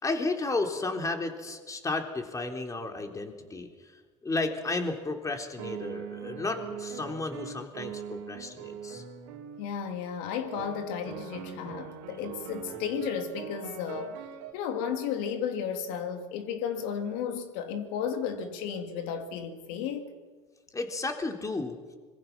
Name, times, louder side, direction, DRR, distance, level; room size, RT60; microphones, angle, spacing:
voice 1, 0.0-3.7 4.2-9.0 20.7-21.8, left 3 dB, 20° left, 3.7 m, -33 dB
sound 1, 5.6-9.7 10.5-14.5, right 8 dB, 70° right, 3.3 m, -41 dB
voice 2, 9.6-14.2 14.5-20.1, left 7 dB, 70° left, 3.0 m, -33 dB
25.0 x 22.5 x 6.1 m
hypercardioid pair, 80°, 16 cm